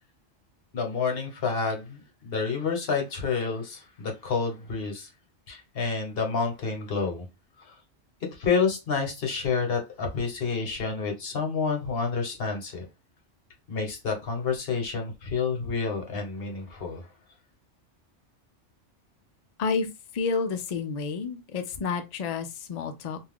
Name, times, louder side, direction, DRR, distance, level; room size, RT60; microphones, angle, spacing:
voice 1, 0.7-5.1 5.5-7.2 7.6-7.7 8.3-12.8 13.7-17.1, left 5 dB, 55° left, 1.1 m, -29 dB
voice 2, 20.1-23.2, left 5 dB, 75° left, 0.3 m, -30 dB
2.5 x 2.3 x 3.4 m
omnidirectional pair, 1.2 m